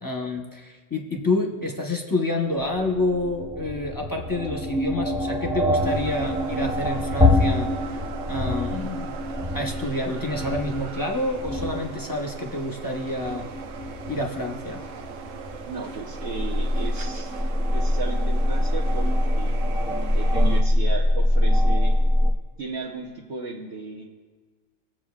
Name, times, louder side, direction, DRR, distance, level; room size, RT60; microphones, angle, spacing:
voice 1, 0.0-7.7 8.3-9.1 9.5-13.4 14.1-14.8, left 2 dB, 20° left, 0 dB, 0.8 m, -28 dB
sound 1, 2.6-22.3, left 1 dB, 10° right, 0.3 m, -25 dB
sound 2, 5.8-20.6, right 7 dB, 85° right, 1.0 m, -40 dB
voice 2, 15.7-17.3 17.7-19.1 19.4-19.5 20.1-22.0 22.6-24.1, right 4 dB, 60° right, -4 dB, 1.1 m, -35 dB
20.0 x 7.4 x 2.4 m, 1.5 s
omnidirectional pair, 1.3 m